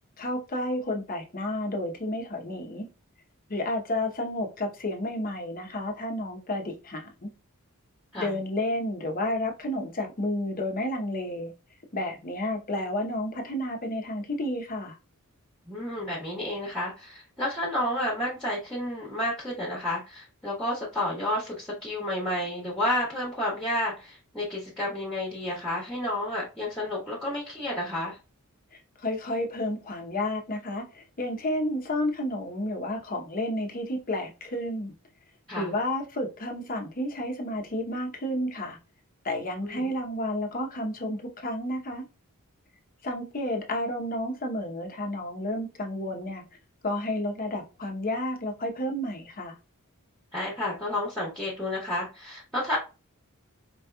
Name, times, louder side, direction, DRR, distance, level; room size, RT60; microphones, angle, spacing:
voice 1, 0.2-2.9 3.5-7.3 8.2-11.5 11.9-14.9 28.7-34.9 35.5-38.8 39.2-42.0 43.0-46.4 46.8-49.5, left 1 dB, 40° left, 0.8 m, -31 dB
voice 2, 15.7-28.2 35.5-35.7 39.6-39.9 50.3-52.8, left 1 dB, 5° left, 1.2 m, -31 dB
4.5 x 2.9 x 2.3 m
head